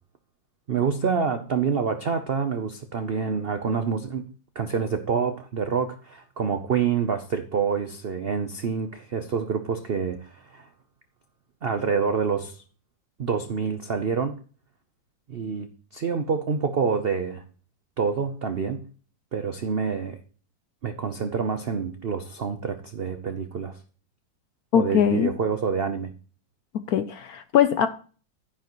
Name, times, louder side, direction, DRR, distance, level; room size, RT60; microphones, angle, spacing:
voice 1, 0.7-4.3 4.6-10.7 11.6-12.6 13.2-14.4 15.3-17.4 18.0-18.9 19.3-20.2 20.8-23.8 24.7-26.1, right 6 dB, 75° right, 0.5 m, -27 dB
voice 2, 24.7-25.3 26.7-27.9, left 9 dB, 70° left, 0.9 m, -21 dB
10.5 x 10.0 x 3.0 m
omnidirectional pair, 2.1 m